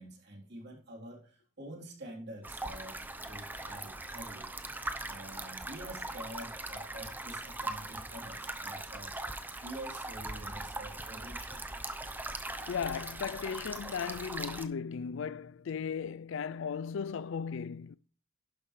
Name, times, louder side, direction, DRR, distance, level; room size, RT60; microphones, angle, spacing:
voice 1, 0.0-11.7, right 1 dB, 50° right, 3.6 m, -47 dB
sound 1, 2.4-14.7, right 2 dB, 10° right, 0.7 m, -40 dB
voice 2, 12.7-18.0, left 6 dB, 65° left, 0.4 m, -36 dB
11.5 x 10.0 x 3.2 m
head